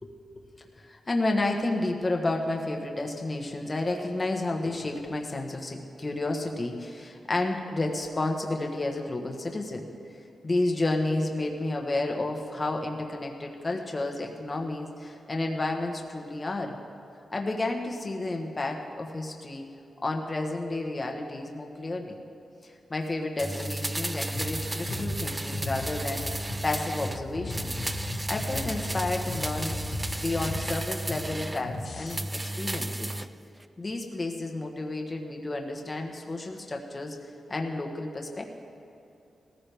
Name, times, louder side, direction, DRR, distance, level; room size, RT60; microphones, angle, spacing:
voice 1, 0.0-9.9 10.4-16.8 17.3-19.7 20.0-22.2 22.6-26.3 26.6-27.8 28.3-29.8 30.2-32.2 32.6-33.1 33.8-37.2 37.5-38.4, left 2 dB, 30° left, 2 dB, 1.3 m, -31 dB
sound 1, 23.4-27.2 27.5-31.7 32.1-33.3 33.6-33.7, right 1 dB, 15° right, 0.4 m, -33 dB
sound 2, 24.3-32.2, left 2 dB, 65° left, 2.1 m, -37 dB
18.5 x 14.5 x 3.5 m, 2.7 s
wide cardioid pair, 115°, 0 cm